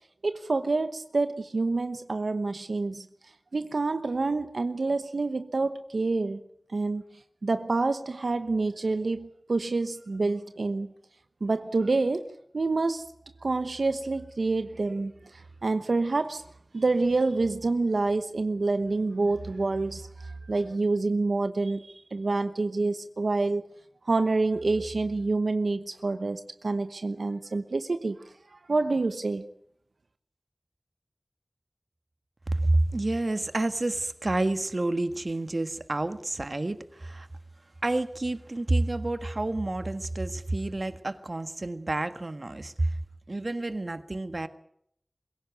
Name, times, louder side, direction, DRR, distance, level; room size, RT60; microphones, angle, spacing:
voice 1, 0.2-3.1 3.5-6.4 6.7-7.0 7.4-10.9 11.4-12.3 12.5-13.1 13.4-16.4 16.7-23.6 24.0-28.2 28.5-29.4, right 3 dB, 85° right, 9 dB, 1.0 m, -27 dB
voice 2, 32.5-37.3 37.8-43.0 43.3-44.5, right 2 dB, 50° right, 10 dB, 1.5 m, -29 dB
23.0 x 16.5 x 9.4 m, 0.72 s
wide cardioid pair, 60°, 0 cm